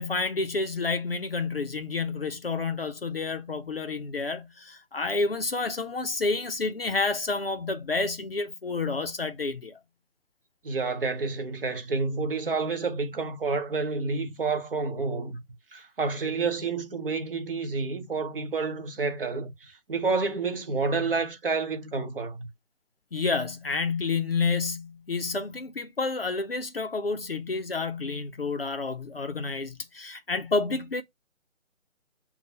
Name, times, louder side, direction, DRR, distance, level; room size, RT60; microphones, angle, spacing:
voice 1, 0.0-9.8 23.1-31.0, left 3 dB, 45° left, 0.5 m, -29 dB
voice 2, 10.6-15.4 15.7-22.5, right 4 dB, 45° right, 0.9 m, -29 dB
6.5 x 2.3 x 2.7 m
figure-of-eight pair, 155°, 40 cm